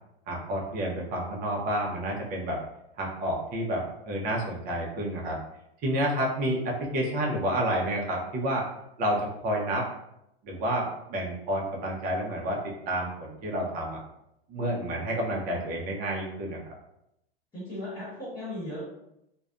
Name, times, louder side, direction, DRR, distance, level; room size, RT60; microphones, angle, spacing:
voice 1, 0.3-2.6 3.0-5.4 5.8-8.7 9.0-9.9 10.4-14.0 14.5-16.6, right 1 dB, 30° right, -1 dB, 0.6 m, -29 dB
voice 2, 17.5-18.8, left 1 dB, 15° left, -10 dB, 1.2 m, -36 dB
2.4 x 2.1 x 2.4 m, 0.83 s
hypercardioid pair, 130°, 30 cm